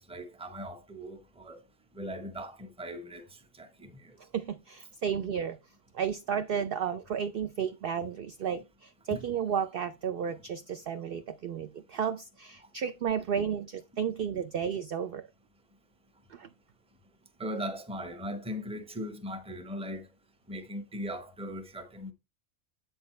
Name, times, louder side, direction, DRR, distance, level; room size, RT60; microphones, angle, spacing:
voice 1, 0.0-1.6 1.9-4.2 9.1-9.3 12.6-12.7 17.4-20.1 20.5-22.1, equal, 5° right, 0.7 m, -39 dB
voice 2, 4.3-5.6 5.9-15.3 16.3-16.5, right 7 dB, 65° right, 0.6 m, -33 dB
8.0 x 6.4 x 3.1 m
omnidirectional pair, 1.4 m